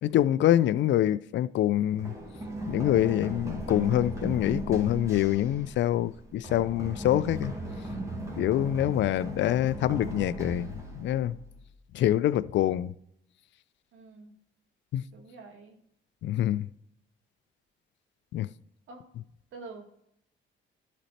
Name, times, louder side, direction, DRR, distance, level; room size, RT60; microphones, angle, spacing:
voice 1, 0.0-2.1 2.7-7.5 8.4-10.7 10.9-11.4 11.9-12.9 14.9-15.0 16.2-16.7 18.3-18.5, left 12 dB, 70° left, 0.4 m, -25 dB
Run, 2.0-11.7, right 1 dB, 15° right, 2.0 m, -37 dB
voice 2, 13.9-14.3 15.1-15.8 18.9-19.1 19.5-19.9, right 3 dB, 80° right, 1.9 m, -46 dB
11.5 x 4.2 x 4.2 m
cardioid pair, 90°, 20 cm